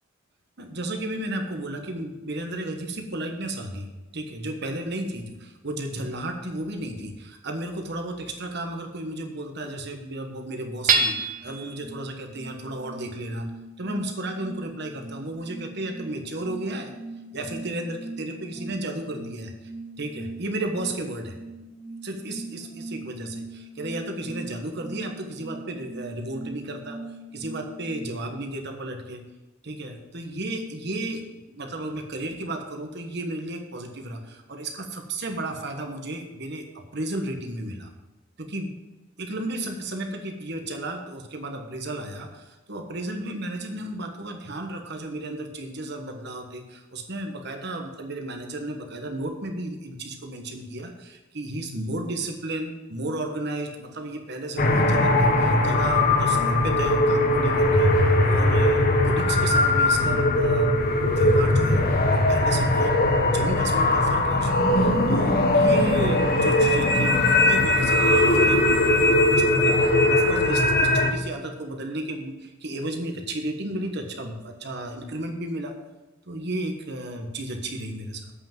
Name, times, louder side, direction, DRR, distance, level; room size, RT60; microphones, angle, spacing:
voice 1, 0.6-13.5 13.8-16.9 17.3-19.7 20.0-21.4 22.0-27.0 27.3-29.2 29.6-37.9 38.4-38.7 39.2-75.8 76.3-78.3, right 1 dB, 60° right, 4 dB, 1.3 m, -33 dB
Hammer / Chink clink, 10.9-11.7, right 4 dB, 45° right, 0.9 m, -23 dB
sound 1, 11.4-28.2, right 2 dB, 15° right, 1.2 m, -41 dB
sound 2, 54.6-71.1, left 1 dB, 50° left, 1.0 m, -20 dB
8.2 x 5.7 x 7.7 m, 1.1 s
head